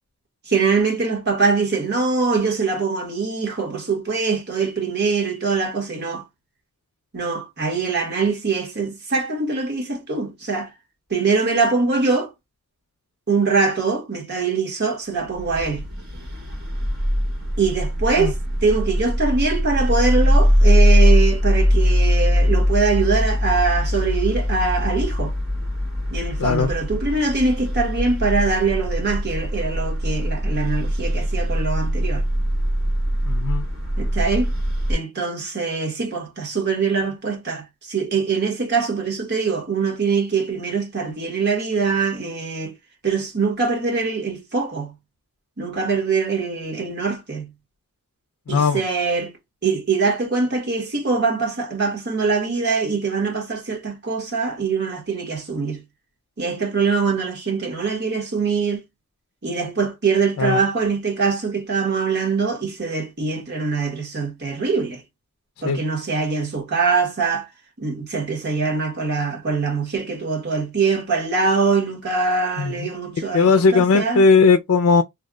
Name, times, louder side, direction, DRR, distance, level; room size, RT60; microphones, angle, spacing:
voice 1, 0.5-6.2 7.1-10.7 11.1-12.3 13.3-15.8 17.6-25.3 26.1-32.3 34.0-34.5 34.9-42.8 43.0-44.9 45.6-47.5 48.5-49.3 49.6-55.8 56.4-58.8 59.4-65.0 65.6-67.5 67.8-74.3, right 4 dB, 50° right, 1.3 m, -23 dB
sound 1, 15.3-35.0, equal, 75° right, 2.1 m, -21 dB
voice 2, 33.3-33.7 48.5-48.8 60.4-60.6 65.6-65.8 72.6-72.9 73.3-75.0, left 4 dB, 75° left, 0.4 m, -17 dB
3.3 x 2.2 x 3.6 m
head